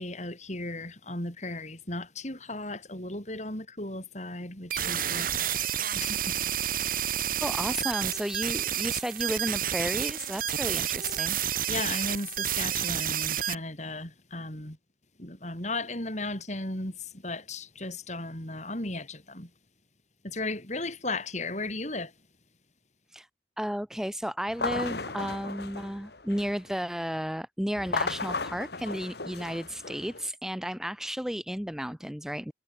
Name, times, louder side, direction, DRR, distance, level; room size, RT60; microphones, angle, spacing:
voice 1, 0.0-6.4 11.7-14.8 15.2-19.5 20.2-22.1, left 2 dB, 40° left, 6.0 m, -36 dB
sound 1, 4.7-13.6, right 10 dB, 50° right, 1.6 m, -30 dB
voice 2, 7.4-11.4 23.1-23.3 23.6-32.5, equal, 5° right, 0.9 m, -33 dB
sound 2, 24.5-26.7 27.8-30.3, left 3 dB, 60° left, 2.0 m, -35 dB
head